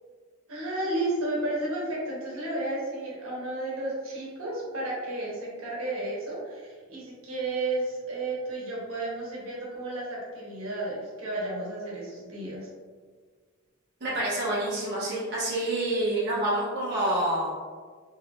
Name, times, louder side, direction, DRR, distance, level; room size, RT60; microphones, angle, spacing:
voice 1, 0.5-12.7, right 2 dB, 85° right, -5 dB, 1.1 m, -32 dB
voice 2, 14.0-17.5, right 1 dB, 55° right, -7 dB, 0.8 m, -27 dB
3.4 x 3.0 x 2.4 m, 1.5 s
head